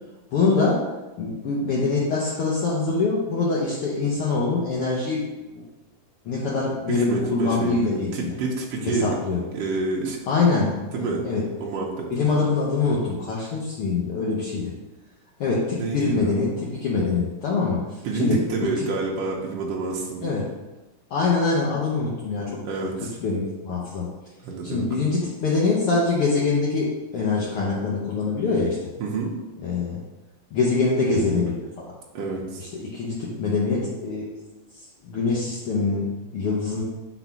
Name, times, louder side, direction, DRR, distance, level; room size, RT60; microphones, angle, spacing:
voice 1, 0.3-0.8 1.2-5.2 6.2-8.3 8.8-9.4 10.3-11.4 12.1-14.7 15.4-18.4 18.8-18.9 20.2-20.5 21.1-22.5 23.2-24.1 24.7-28.8 29.6-30.0 30.5-31.9 32.7-34.3 35.0-36.1 36.3-36.8, left 4 dB, 90° left, -5 dB, 1.2 m, -24 dB
voice 2, 6.9-9.2 9.5-10.2 10.9-11.2 11.6-12.1 15.8-16.3 18.0-20.4 22.6-23.1 24.4-24.8 29.0-29.3 32.1-32.6, right 4 dB, 75° right, -3 dB, 1.5 m, -28 dB
5.2 x 4.1 x 5.8 m, 1.1 s
omnidirectional pair, 3.8 m